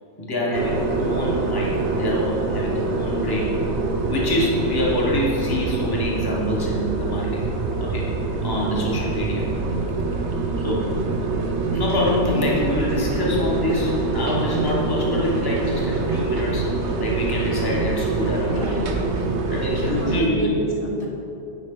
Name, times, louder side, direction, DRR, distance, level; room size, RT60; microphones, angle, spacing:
voice 1, 0.2-3.5 4.1-7.4 7.8-8.0 8.4-9.5 10.6-10.9 11.7-16.7 17.0-18.8 19.5-20.6, left 1 dB, 20° left, -4 dB, 1.1 m, -25 dB
sound 1, 0.5-20.2, right 3 dB, 70° right, 1.0 m, -25 dB
voice 2, 18.5-19.3 19.7-21.1, right 1 dB, 50° left, -4 dB, 1.2 m, -30 dB
10.5 x 5.0 x 3.7 m, 2.9 s
omnidirectional pair, 1.2 m